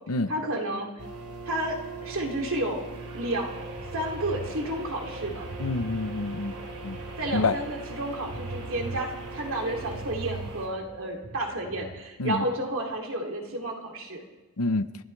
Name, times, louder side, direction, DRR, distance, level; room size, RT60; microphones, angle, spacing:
voice 1, 0.3-0.9 1.4-2.9 3.1-3.5 3.9-5.5 7.2-14.2, right 1 dB, 65° right, 1 dB, 2.7 m, -31 dB
sound 1, 1.0-10.7, right 2 dB, 90° right, 3.0 m, -40 dB
sound 2, 3.4-12.0, right 4 dB, 40° right, 0.6 m, -41 dB
voice 2, 5.6-6.5 6.8-7.0 7.3-7.6 12.2-12.4 14.6-14.9, left 3 dB, 80° left, 12 dB, 0.8 m, -27 dB
28.0 x 12.5 x 3.3 m, 1.2 s
head